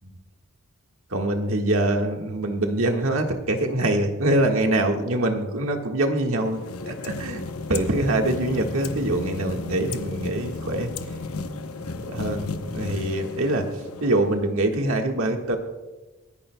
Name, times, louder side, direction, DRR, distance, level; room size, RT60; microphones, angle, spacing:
voice 1, 1.1-7.4 7.7-10.9 12.1-13.7 14.0-15.6, right 1 dB, 65° right, 3 dB, 1.6 m, -24 dB
sound 1, 6.3-14.6, left 3 dB, 80° left, 0.8 m, -34 dB
27.5 x 10.5 x 2.2 m, 1.1 s
head